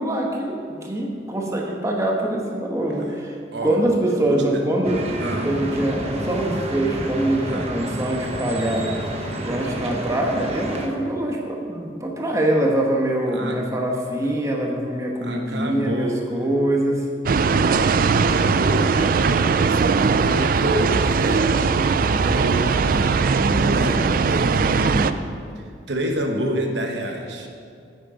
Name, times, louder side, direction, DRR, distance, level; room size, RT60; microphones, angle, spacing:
voice 1, 0.0-3.4 3.6-5.0 5.4-8.9 9.4-17.1, right 1 dB, 20° right, 0 dB, 1.2 m, -24 dB
voice 2, 4.3-4.6 5.2-5.5 7.5-7.7 13.3-13.6 15.2-16.3 18.1-21.5 21.9-25.2 25.6-27.5, right 1 dB, 75° right, 2 dB, 1.1 m, -28 dB
sound 1, 4.8-10.9, right 1 dB, 35° right, 1.1 m, -30 dB
sound 2, 17.3-25.1, right 5 dB, 55° right, 0.4 m, -19 dB
9.4 x 9.3 x 5.0 m, 2.3 s
head